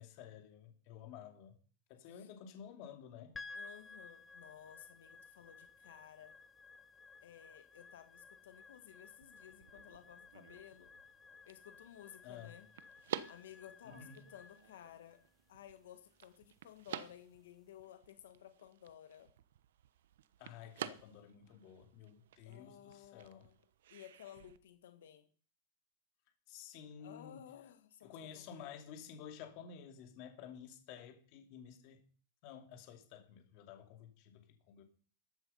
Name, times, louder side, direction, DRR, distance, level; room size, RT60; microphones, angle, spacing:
voice 1, 0.0-1.6 1.9-3.4 12.2-12.6 13.8-14.2 20.4-23.5 26.5-27.5 28.0-32.0 32.4-34.8, left 8 dB, 40° left, 5 dB, 2.5 m, -52 dB
sound 1, 3.3-17.7, left 4 dB, 10° left, 0.6 m, -56 dB
voice 2, 3.5-6.3 7.2-10.9 11.5-12.7 13.3-15.2 15.5-19.3 22.4-23.6 23.9-25.3 27.0-28.7, left 10 dB, 90° left, 9 dB, 1.6 m, -56 dB
sound 2, 9.1-24.6, right 10 dB, 80° right, 0.9 m, -51 dB
14.0 x 9.6 x 5.6 m, 0.42 s
supercardioid pair, 170°, 0 cm